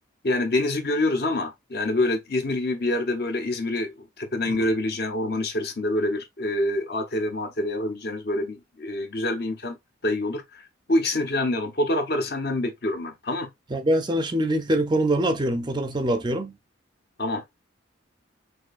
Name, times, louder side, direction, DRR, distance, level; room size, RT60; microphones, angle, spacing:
voice 1, 0.2-9.8 10.0-13.5 17.2-17.5, left 1 dB, 50° left, 1.0 m, -26 dB
voice 2, 13.7-16.5, right 1 dB, 20° right, 0.5 m, -24 dB
6.1 x 2.6 x 2.4 m
head